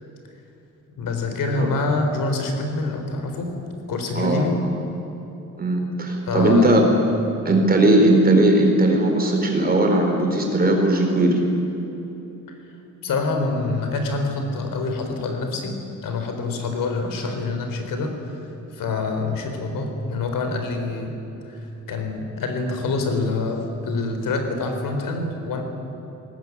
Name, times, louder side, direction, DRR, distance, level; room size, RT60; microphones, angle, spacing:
voice 1, 1.0-3.5 3.9-4.6 6.3-6.8 12.5-12.6 13.0-21.2 21.5-25.6, left 3 dB, 85° left, 5 dB, 4.1 m, -26 dB
voice 2, 4.1-4.7 5.6-6.8 7.4-11.4, right 1 dB, 30° right, 2 dB, 4.6 m, -18 dB
21.5 x 18.5 x 9.8 m, 3.0 s
wide cardioid pair, 145°, 32 cm